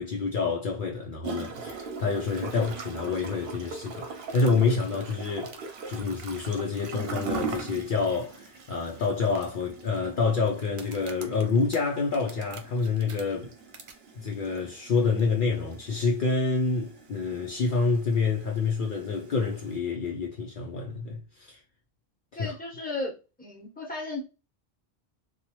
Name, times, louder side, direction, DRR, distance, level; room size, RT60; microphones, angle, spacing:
voice 1, 0.0-5.6 5.9-13.5 14.2-21.6 22.4-22.6, left 4 dB, 60° left, 0.7 m, -28 dB
Gurgling / Toilet flush, 1.2-19.8, right 5 dB, 70° right, 0.9 m, -41 dB
sound 1, 4.2-6.6 7.2-7.6 7.8-7.9 8.5-8.6 9.2-10.0 10.7-13.2 13.7-13.9, right 4 dB, 50° right, 0.4 m, -48 dB
voice 2, 22.3-23.1 23.4-24.2, left 2 dB, 10° left, 0.9 m, -34 dB
2.8 x 2.3 x 2.9 m
omnidirectional pair, 1.0 m